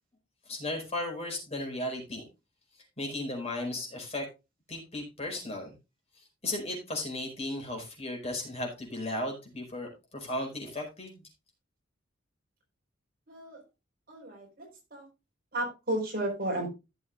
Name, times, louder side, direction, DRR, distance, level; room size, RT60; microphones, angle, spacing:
voice 1, 0.5-2.2 3.0-4.2 4.7-5.7 6.2-11.2, left 1 dB, 35° left, 1 dB, 4.9 m, -35 dB
voice 2, 13.3-13.6 14.1-15.0 15.5-16.7, right 1 dB, 50° right, 0 dB, 4.6 m, -33 dB
16.0 x 7.2 x 2.5 m, 0.26 s
head